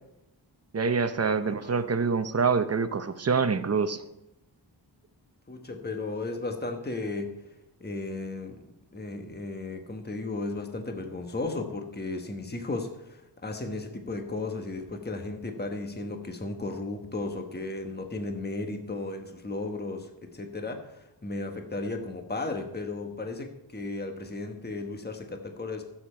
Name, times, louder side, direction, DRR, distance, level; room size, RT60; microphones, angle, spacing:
voice 1, 0.7-4.0, right 5 dB, 35° right, 11 dB, 0.8 m, -26 dB
voice 2, 1.3-2.0 5.5-7.4 7.8-8.6 8.9-25.8, left 2 dB, 25° left, 4 dB, 1.3 m, -35 dB
14.5 x 7.4 x 4.5 m, 0.90 s
wide cardioid pair, 105°, 43 cm